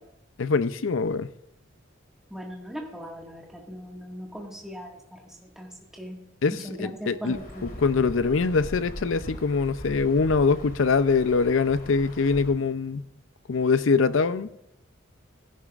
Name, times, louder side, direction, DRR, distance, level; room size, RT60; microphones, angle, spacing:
voice 1, 0.4-1.3 6.4-7.4 7.8-13.0 13.5-14.5, left 4 dB, 70° left, 0.5 m, -23 dB
voice 2, 2.3-5.7 5.9-6.2 6.5-7.6, equal, ahead, 1.8 m, -39 dB
Insect / Thunder / Rain, 7.3-12.5, equal, 45° left, 2.5 m, -41 dB
16.5 x 11.0 x 2.5 m
head